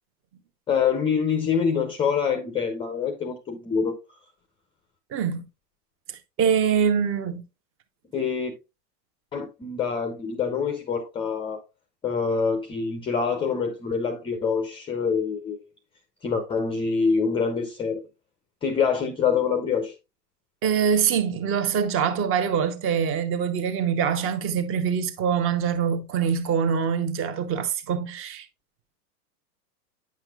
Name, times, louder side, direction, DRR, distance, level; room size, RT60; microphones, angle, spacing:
voice 1, 0.7-3.9 8.1-8.5 9.3-11.6 12.0-15.6 16.2-18.0 18.6-19.9, left 6 dB, 10° left, 0.5 m, -25 dB
voice 2, 5.1-5.4 6.4-7.4 20.6-28.5, right 7 dB, 25° right, 0.9 m, -24 dB
9.2 x 5.7 x 2.3 m
hypercardioid pair, 125°, 49 cm